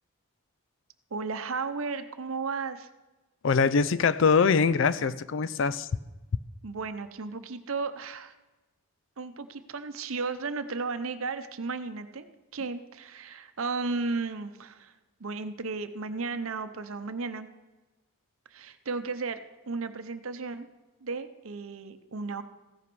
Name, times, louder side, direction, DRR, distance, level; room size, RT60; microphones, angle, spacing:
voice 1, 1.1-2.9 6.6-8.3 9.2-12.3 12.5-14.9 15.2-17.5 18.5-19.4 19.7-20.7 21.0-22.4, right 4 dB, 70° right, 10 dB, 0.7 m, -34 dB
voice 2, 3.4-5.9, left 5 dB, 60° left, 17 dB, 0.4 m, -23 dB
15.0 x 6.0 x 6.1 m, 1.1 s
head